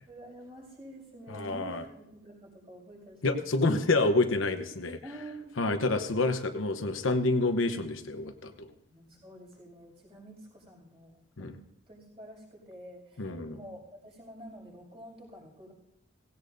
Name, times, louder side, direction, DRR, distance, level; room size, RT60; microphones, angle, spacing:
voice 1, 0.1-3.7 5.0-5.8 8.9-11.6 11.9-15.7, right 1 dB, 30° right, -2 dB, 5.9 m, -48 dB
voice 2, 1.3-1.8 3.2-5.0 5.6-8.7 11.4-11.6 13.2-13.6, left 2 dB, 85° left, 7 dB, 1.0 m, -28 dB
18.0 x 17.0 x 2.7 m, 0.82 s
head